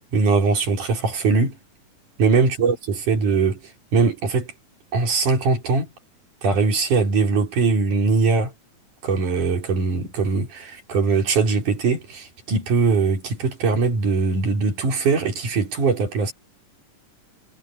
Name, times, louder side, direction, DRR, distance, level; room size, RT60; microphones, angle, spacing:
voice 1, 0.1-1.6 2.2-3.6 3.9-4.5 4.9-5.9 6.4-8.5 9.0-16.3, right 4 dB, 70° right, 5.5 m, -21 dB
omnidirectional pair, 3.7 m